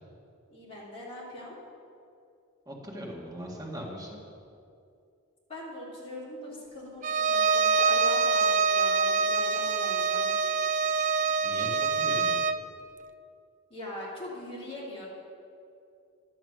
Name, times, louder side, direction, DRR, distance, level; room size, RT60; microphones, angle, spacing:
voice 1, 0.5-1.6 5.5-10.3 13.7-15.1, left 1 dB, 25° left, -6 dB, 2.8 m, -41 dB
voice 2, 2.7-4.2 11.4-12.4, equal, 20° right, -3 dB, 1.9 m, -40 dB
Bowed string instrument, 7.0-12.6, right 4 dB, 35° right, 0.3 m, -25 dB
11.0 x 7.5 x 6.2 m, 2.5 s
head